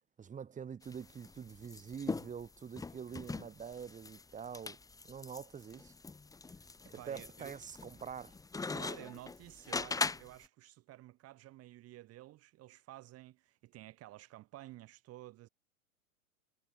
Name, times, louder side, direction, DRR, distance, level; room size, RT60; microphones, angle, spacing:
voice 1, 0.2-4.8 5.0-5.9 6.9-8.3, right 7 dB, 15° right, 2.8 m, -45 dB
sound 1, 0.8-10.5, left 3 dB, 10° left, 1.5 m, -41 dB
voice 2, 6.4-7.5 8.7-15.5, right 16 dB, 35° right, 3.2 m, -52 dB
hypercardioid pair, 105°, 43 cm